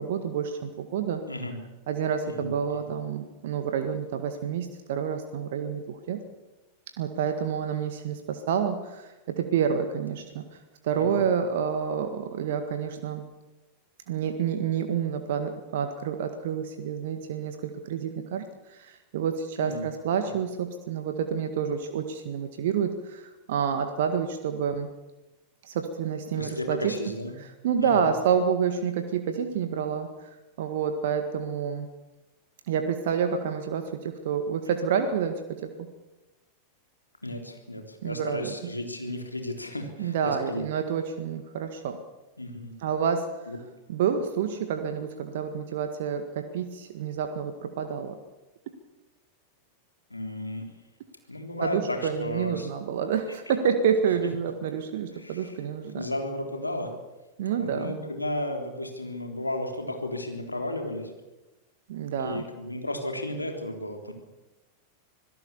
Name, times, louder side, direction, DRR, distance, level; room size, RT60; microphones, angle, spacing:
voice 1, 0.0-1.2 1.9-6.2 7.0-10.6 10.8-13.2 14.1-24.9 25.6-26.9 27.6-30.3 30.6-31.9 32.7-35.9 38.0-38.5 40.0-42.0 42.8-43.3 43.9-48.2 51.6-56.1 57.4-58.0 61.9-62.5, right 7 dB, 55° right, 7 dB, 1.8 m, -28 dB
voice 2, 1.3-1.6 2.3-2.9 10.9-11.3 19.6-19.9 20.3-20.4 26.3-27.3 27.8-28.1 37.2-40.6 42.4-42.8 43.5-43.6 50.1-50.7 51.3-52.9 55.1-55.6 55.9-57.0 57.6-61.1 62.2-64.1, left 1 dB, 85° left, 4 dB, 3.5 m, -34 dB
26.0 x 17.5 x 7.2 m, 1.1 s
figure-of-eight pair, 90°, 0 cm